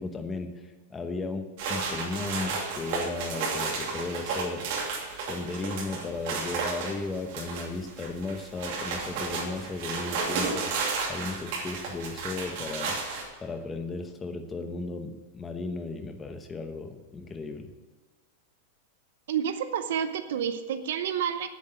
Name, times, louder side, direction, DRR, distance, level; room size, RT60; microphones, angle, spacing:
voice 1, 0.0-4.7 5.2-10.8 11.1-13.0 13.4-17.7, left 3 dB, 10° left, 7 dB, 0.9 m, -35 dB
sound 1, 1.6-13.2, right 4 dB, 45° right, 2.8 m, -33 dB
voice 2, 19.3-21.5, right 8 dB, 70° right, 10 dB, 0.8 m, -29 dB
9.8 x 8.0 x 7.7 m, 1.4 s
supercardioid pair, 170°, 0 cm